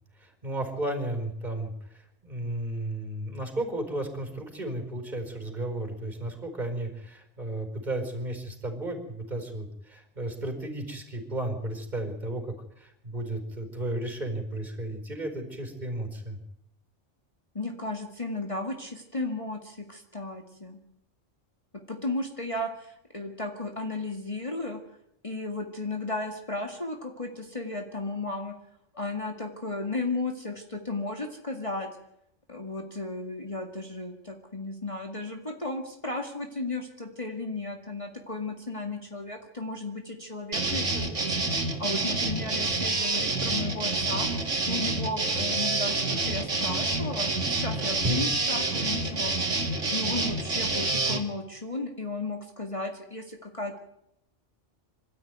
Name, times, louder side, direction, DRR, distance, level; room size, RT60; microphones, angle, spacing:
voice 1, 0.2-16.4 48.0-48.3, right 1 dB, 35° right, 5 dB, 4.9 m, -34 dB
voice 2, 17.5-20.8 21.9-24.8 25.2-28.6 28.9-31.9 32.5-44.3 44.6-47.3 47.6-49.3 49.9-53.8, left 2 dB, 25° left, 2 dB, 2.2 m, -34 dB
sound 1, 40.5-51.2, right 3 dB, 80° right, 2.6 m, -28 dB
26.5 x 13.5 x 9.4 m, 0.78 s
omnidirectional pair, 1.2 m